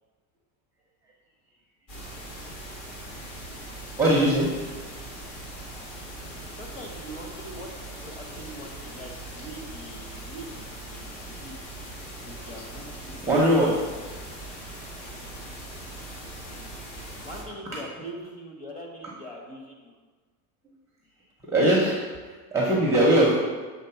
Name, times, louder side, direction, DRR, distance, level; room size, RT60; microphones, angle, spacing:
sound 1, 1.9-17.4, right 1 dB, 45° left, 1.6 m, -40 dB
voice 1, 4.0-4.5 13.2-13.7 21.4-23.4, right 1 dB, 5° right, -4 dB, 0.6 m, -21 dB
voice 2, 6.6-11.6 12.2-13.7 17.2-19.9, right 1 dB, 20° left, -1 dB, 1.0 m, -42 dB
6.7 x 3.6 x 5.6 m, 1.4 s
cardioid pair, 170°, 44 cm